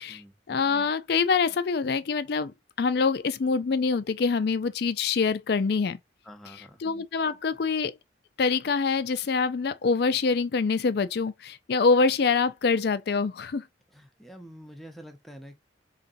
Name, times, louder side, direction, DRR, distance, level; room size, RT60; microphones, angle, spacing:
voice 1, 0.5-2.5 2.8-6.0 6.8-8.0 8.4-13.6, left 4 dB, 60° left, 0.4 m, -25 dB
voice 2, 6.2-6.8 13.9-15.6, equal, ahead, 0.7 m, -46 dB
4.0 x 3.2 x 2.5 m
head